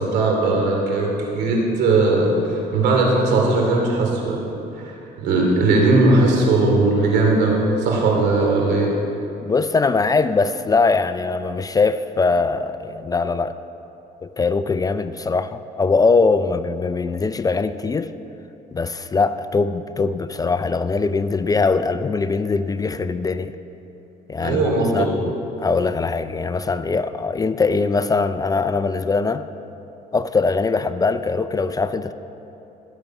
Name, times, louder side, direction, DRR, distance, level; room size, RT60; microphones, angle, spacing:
voice 1, 0.0-4.4 4.8-4.9 5.2-8.9 24.4-25.1, right 2 dB, 80° right, 0 dB, 2.6 m, -18 dB
voice 2, 9.5-13.6 14.2-18.1 18.7-23.6 24.3-24.6 24.9-29.4 30.1-32.1, left 4 dB, 20° left, 12 dB, 0.4 m, -21 dB
16.0 x 6.9 x 6.0 m, 3.0 s
cardioid pair, 110°, 17 cm